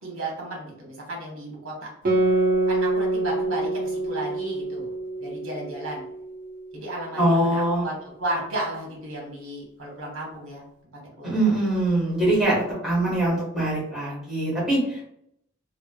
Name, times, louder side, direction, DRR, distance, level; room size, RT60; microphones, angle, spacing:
voice 1, 0.0-1.9 2.7-4.9 5.2-6.0 6.7-10.6 11.2-11.3, right 1 dB, 65° right, -2 dB, 1.1 m, -33 dB
Guitar, 2.1-7.0, right 2 dB, 40° right, 0.5 m, -26 dB
voice 2, 7.2-7.8 11.2-15.0, right 1 dB, ahead, -8 dB, 1.2 m, -23 dB
3.2 x 2.1 x 2.2 m, 0.72 s
head